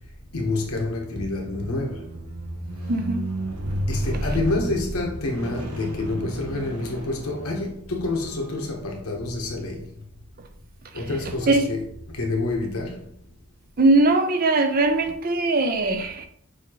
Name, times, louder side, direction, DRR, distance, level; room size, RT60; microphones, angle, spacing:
voice 1, 0.3-2.1 3.9-9.9 10.9-13.1, left 2 dB, 75° left, 1.0 m, -28 dB
Squeak, 1.5-7.8 8.6-8.7, right 1 dB, 80° right, 0.8 m, -32 dB
voice 2, 2.9-3.2 11.4-11.7 13.8-16.3, right 2 dB, 40° right, 0.5 m, -20 dB
6.3 x 2.8 x 3.0 m
head